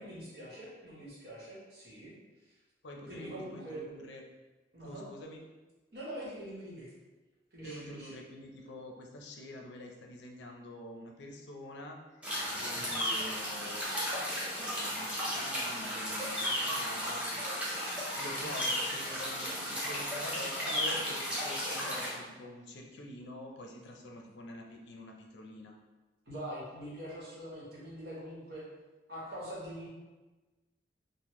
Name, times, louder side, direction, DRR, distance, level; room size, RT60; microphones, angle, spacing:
voice 1, 0.0-2.1 2.5-2.6 3.1-3.8 4.7-5.1 5.9-6.9 7.5-8.2 12.7-13.0 18.3-18.5 26.3-28.6 29.1-29.9, equal, 55° right, -7 dB, 1.1 m, -44 dB
voice 2, 2.8-4.2 4.8-5.4 7.6-17.7 18.2-25.8, left 1 dB, 75° left, 1 dB, 0.5 m, -47 dB
sound 1, 12.2-22.1, equal, 5° right, 0.6 m, -34 dB
3.5 x 2.1 x 2.9 m, 1.2 s
head